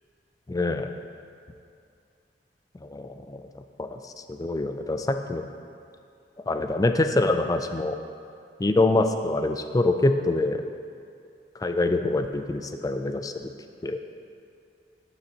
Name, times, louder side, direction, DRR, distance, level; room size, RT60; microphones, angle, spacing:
voice 1, 0.5-0.9 2.8-3.4 3.8-4.0 4.3-5.4 6.5-8.0 8.6-10.6 11.6-13.5 13.8-14.0, left 2 dB, 20° left, 7 dB, 0.3 m, -25 dB
13.5 x 6.1 x 2.8 m, 2.4 s
head